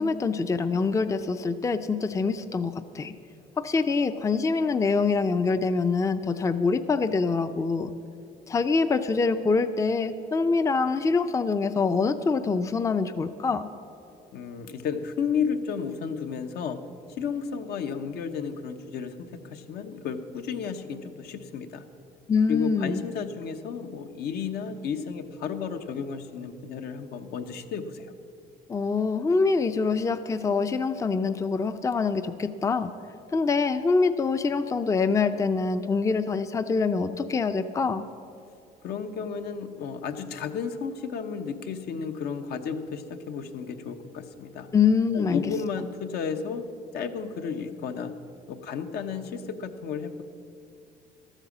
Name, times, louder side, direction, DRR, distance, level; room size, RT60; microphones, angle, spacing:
voice 1, 0.0-3.1 3.6-7.9 8.5-13.7 22.3-23.0 28.7-32.9 33.3-38.0 44.7-45.4, left 4 dB, 20° left, 10 dB, 0.5 m, -25 dB
voice 2, 14.3-16.8 17.1-21.9 22.5-28.1 38.8-44.7 45.1-46.6 46.9-48.1 48.5-50.2, left 6 dB, 70° left, 7 dB, 1.0 m, -33 dB
12.5 x 9.0 x 7.3 m, 2.6 s
cardioid pair, 110°, 17 cm